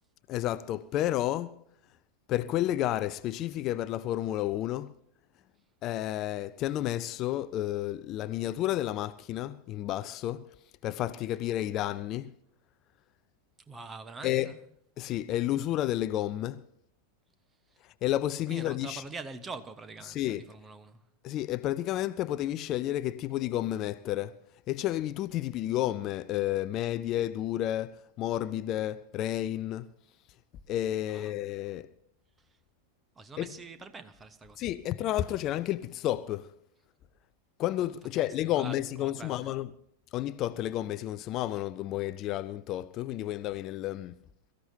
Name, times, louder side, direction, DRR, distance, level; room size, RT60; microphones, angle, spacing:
voice 1, 0.3-1.6 2.3-4.9 5.8-10.5 10.8-12.3 14.2-14.5 15.0-16.6 17.8-19.0 20.0-20.4 21.2-24.4 24.7-29.9 30.7-31.9 33.4-33.5 34.6-36.5 37.6-39.7 40.1-44.2, left 13 dB, 35° left, 0.5 m, -31 dB
voice 2, 13.7-14.6 18.5-21.0 31.0-31.3 33.2-34.6 38.1-38.3 38.5-39.5, right 4 dB, 15° right, 1.1 m, -44 dB
23.0 x 14.5 x 2.8 m
figure-of-eight pair, 90°, 0 cm